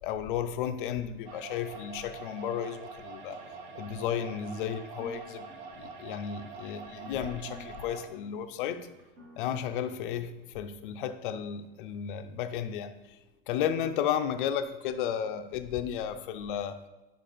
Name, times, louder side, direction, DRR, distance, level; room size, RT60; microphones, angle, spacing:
voice 1, 0.0-3.4 3.7-5.5 5.8-8.9 9.4-12.9 13.5-16.8, left 9 dB, 55° left, 9 dB, 0.5 m, -33 dB
sound 1, 1.3-8.1, right 4 dB, 85° right, 1.1 m, -45 dB
sound 2, 3.3-10.7, left 1 dB, 25° right, 0.7 m, -51 dB
5.6 x 4.3 x 4.9 m, 1.1 s
supercardioid pair, 175°, 31 cm